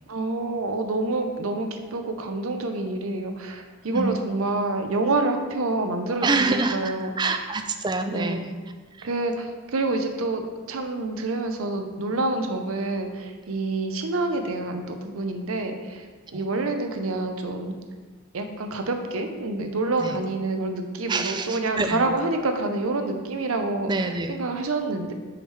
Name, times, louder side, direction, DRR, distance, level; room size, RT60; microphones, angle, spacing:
voice 1, 0.1-7.5 8.1-8.4 9.0-16.1 16.3-17.7 18.3-23.9 24.3-25.1, right 2 dB, 70° right, 5 dB, 0.6 m, -27 dB
voice 2, 6.2-8.5 8.9-9.1 16.3-16.4 20.0-20.2 21.1-22.1 23.9-24.4, right 3 dB, 20° right, 7 dB, 0.3 m, -26 dB
6.2 x 4.8 x 3.3 m, 1.4 s
head